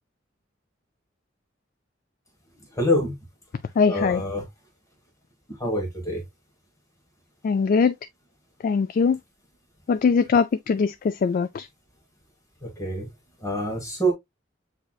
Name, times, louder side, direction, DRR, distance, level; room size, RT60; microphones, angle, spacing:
voice 1, 2.8-3.1 3.9-4.4 5.6-6.2 12.6-13.1 13.4-14.1, equal, 15° left, 1.4 m, -25 dB
voice 2, 3.8-4.2 7.4-7.9 8.6-9.2 9.9-11.7, left 5 dB, 45° left, 0.3 m, -21 dB
7.9 x 2.8 x 2.3 m
head